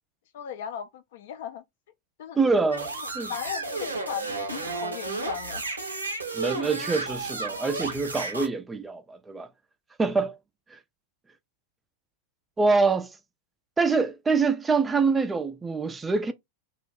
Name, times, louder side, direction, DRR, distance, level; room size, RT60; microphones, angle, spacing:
voice 1, 0.3-1.6 2.2-2.4 3.0-5.6 12.7-12.8, left 9 dB, 55° left, 0.4 m, -37 dB
voice 2, 2.4-3.3 6.3-9.5 10.0-10.3 10.7-10.8 12.6-13.1 13.8-16.3, right 4 dB, 15° right, 0.3 m, -25 dB
sound 1, 2.7-8.5, right 3 dB, 80° right, 0.6 m, -33 dB
2.3 x 2.1 x 3.1 m
figure-of-eight pair, 90°, 0 cm